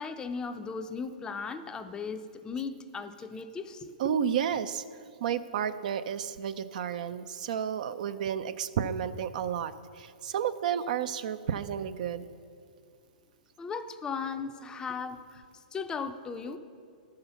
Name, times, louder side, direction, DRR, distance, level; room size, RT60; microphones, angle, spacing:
voice 1, 0.0-4.1 13.6-15.4 15.7-16.6, left 5 dB, 15° left, 9 dB, 0.5 m, -37 dB
voice 2, 4.0-4.8 5.2-12.3, right 8 dB, 60° right, 12 dB, 0.5 m, -31 dB
11.5 x 5.7 x 6.9 m, 2.4 s
hypercardioid pair, 120°, 5 cm